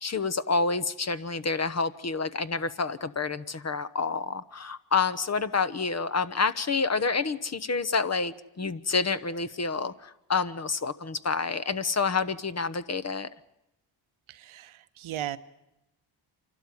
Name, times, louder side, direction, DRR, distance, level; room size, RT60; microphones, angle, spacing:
voice 1, 0.0-13.3, left 4 dB, 35° left, 13 dB, 1.0 m, -28 dB
voice 2, 14.3-15.4, right 12 dB, 80° right, 13 dB, 1.1 m, -36 dB
26.5 x 12.5 x 9.6 m, 0.89 s
cardioid pair, 80°, 48 cm